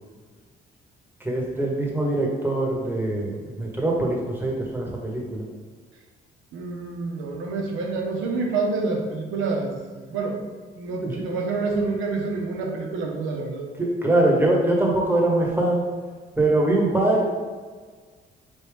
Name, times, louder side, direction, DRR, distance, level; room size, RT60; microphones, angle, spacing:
voice 1, 1.2-5.4 11.0-11.3 13.8-15.8 16.4-17.3, right 2 dB, 10° right, -2 dB, 1.1 m, -23 dB
voice 2, 6.5-10.4 10.7-13.7, right 3 dB, 85° right, 0 dB, 0.8 m, -28 dB
4.2 x 3.5 x 3.4 m, 1.5 s
cardioid pair, 90°, 20 cm